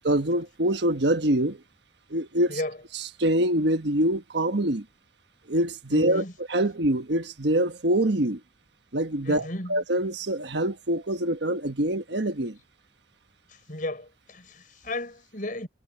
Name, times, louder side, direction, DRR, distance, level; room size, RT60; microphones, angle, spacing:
voice 1, 0.0-1.6 2.1-2.6 2.9-4.8 5.5-6.2 6.5-8.4 8.9-12.6, right 1 dB, 65° right, 1.3 m, -25 dB
voice 2, 5.9-6.3 9.3-9.8 13.7-15.7, left 1 dB, 45° left, 5.7 m, -34 dB
head